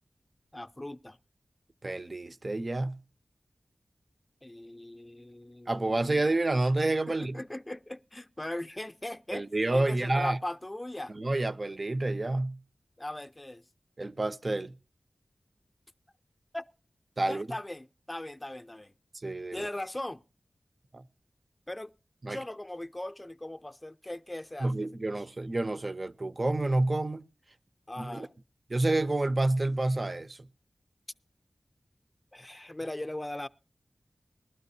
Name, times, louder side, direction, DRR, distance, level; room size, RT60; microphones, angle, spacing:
voice 1, 0.5-1.2 4.4-6.3 7.1-9.4 9.7-11.1 13.0-13.6 16.5-16.7 17.3-18.9 19.5-20.2 21.7-21.9 22.3-24.7 25.2-25.3 27.9-28.3 32.3-33.5, left 1 dB, 20° left, 0.5 m, -39 dB
voice 2, 1.8-3.0 5.7-7.3 9.3-10.4 11.1-12.6 14.0-14.7 17.2-17.5 19.2-19.7 20.9-21.0 22.2-22.4 24.6-27.2 28.0-28.3 28.7-30.5, right 2 dB, 40° right, 0.6 m, -29 dB
19.5 x 13.0 x 2.7 m
wide cardioid pair, 85°, 0 cm